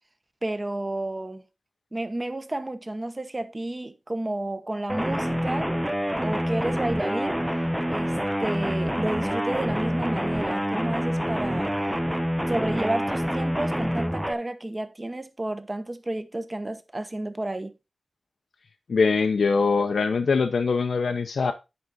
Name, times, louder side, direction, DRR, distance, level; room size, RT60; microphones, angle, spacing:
voice 1, 0.4-1.4 1.9-5.7 6.2-7.4 7.9-11.7 12.5-17.7, right 1 dB, 25° right, 1.1 m, -31 dB
sound 1, 4.9-14.3, equal, 5° right, 0.5 m, -27 dB
voice 2, 18.9-21.5, left 4 dB, 75° left, 0.7 m, -22 dB
9.7 x 5.0 x 4.1 m
wide cardioid pair, 95°, 0 cm